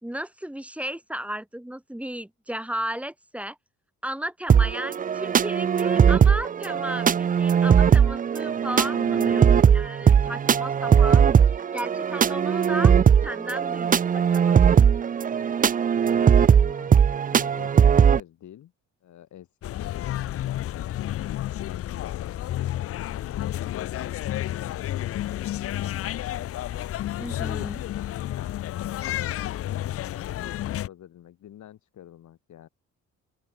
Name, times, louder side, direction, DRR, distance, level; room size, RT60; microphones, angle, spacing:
voice 1, 0.0-3.6 4.0-9.5 9.7-13.0 13.2-14.5 27.2-27.8, right 1 dB, 5° right, 1.5 m, -34 dB
sound 1, 4.5-18.2, right 7 dB, 30° right, 0.4 m, -19 dB
voice 2, 8.8-9.8 10.1-10.4 15.9-17.7 18.0-18.7 19.0-24.0 24.4-25.3 25.6-26.4 28.3-32.7, left 11 dB, 70° left, 6.6 m, -46 dB
sound 2, 19.6-30.9, left 13 dB, 50° left, 0.4 m, -31 dB
open air
cardioid pair, 90°, 30 cm